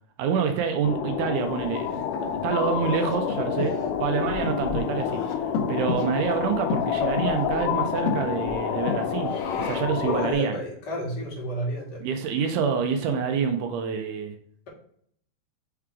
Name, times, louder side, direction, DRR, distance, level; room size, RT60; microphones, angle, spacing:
voice 1, 0.2-2.0 2.4-3.7 4.0-5.2 5.7-9.3 9.6-10.6 12.0-14.4, right 6 dB, 85° right, 5 dB, 2.1 m, -27 dB
sound 1, 0.8-10.3, left 8 dB, 90° left, 2.2 m, -28 dB
Breathing, 1.5-10.1, left 4 dB, 65° left, 1.7 m, -34 dB
voice 2, 10.0-12.0, equal, 35° left, -4 dB, 2.1 m, -31 dB
5.6 x 3.6 x 4.7 m, 0.64 s
omnidirectional pair, 3.7 m